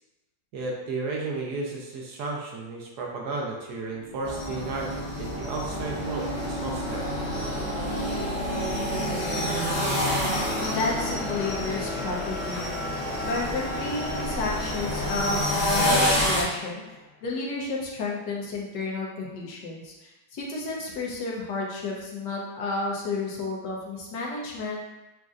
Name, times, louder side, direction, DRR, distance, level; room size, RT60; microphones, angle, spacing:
voice 1, 0.5-7.1, right 3 dB, 70° right, -2 dB, 1.1 m, -33 dB
sound 1, 3.7-16.8, left 1 dB, 55° left, 1.5 m, -33 dB
sound 2, 4.2-16.4, equal, 25° left, 0.7 m, -29 dB
voice 2, 10.6-12.7 13.2-24.8, left 3 dB, 75° left, -2 dB, 1.3 m, -32 dB
6.2 x 2.6 x 2.4 m, 1.0 s
omnidirectional pair, 2.0 m